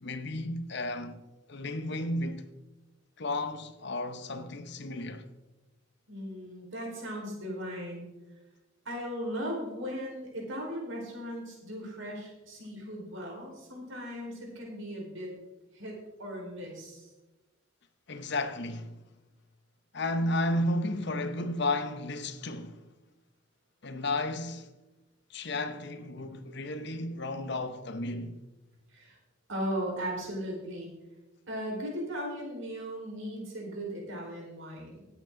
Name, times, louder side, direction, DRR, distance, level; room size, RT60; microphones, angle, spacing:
voice 1, 0.0-1.2 1.5-2.5 3.2-5.3 18.1-19.0 19.9-22.8 23.8-24.7 25.3-28.4, left 2 dB, 55° left, 0.8 m, -33 dB
voice 2, 6.1-8.1 8.8-15.3 15.7-17.1 28.9-29.2 29.5-30.9 31.5-35.1, equal, 65° right, 4.4 m, -37 dB
18.5 x 8.2 x 3.8 m
head